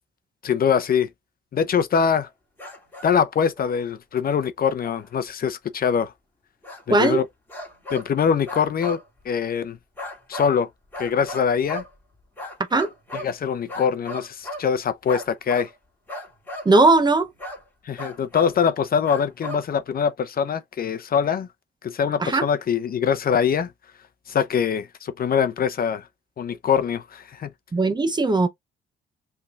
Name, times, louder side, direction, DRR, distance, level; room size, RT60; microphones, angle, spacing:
voice 1, 0.4-1.1 1.5-2.3 3.0-6.1 6.9-7.2 7.9-9.0 9.2-9.8 10.3-10.7 11.0-11.8 13.1-15.7 17.8-21.5 21.8-23.7 24.3-26.1 26.4-27.5, left 7 dB, 50° left, 0.7 m, -23 dB
sound 1, 2.6-3.1 3.6-3.8 4.8-5.0 6.6-7.2 7.5-8.1 8.5-9.1 10.0-10.6 10.9-11.9 12.4-13.3 13.7-14.7 15.1-15.8 16.1-16.7 17.4-17.6 18.0-18.6 19.0-19.7, left 1 dB, 10° left, 2.2 m, -36 dB
voice 2, 16.7-17.3 22.2-22.5 27.7-28.5, right 3 dB, 20° right, 0.7 m, -18 dB
5.4 x 3.4 x 2.5 m
cardioid pair, 90°, 20 cm